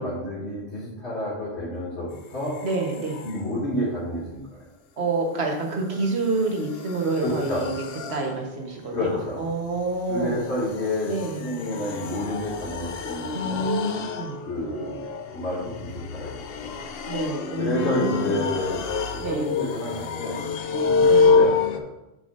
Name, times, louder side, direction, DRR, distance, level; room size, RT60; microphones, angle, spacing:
voice 1, 0.0-2.6 3.2-4.6 7.2-7.7 8.9-9.4 10.1-11.1 11.4-13.7 14.5-14.9 15.3-16.7 17.6-18.8 19.1-21.9, left 1 dB, 85° left, -11 dB, 2.6 m, -29 dB
sound 1, 2.5-3.5 5.6-21.8, left 4 dB, 65° left, 0.8 m, -27 dB
voice 2, 2.6-3.2 5.0-10.4 11.0-11.6 13.3-14.4 17.1-18.4 19.2-19.5 21.1-21.3, right 3 dB, 70° right, 1 dB, 1.5 m, -28 dB
8.6 x 5.7 x 2.6 m, 0.93 s
omnidirectional pair, 1.1 m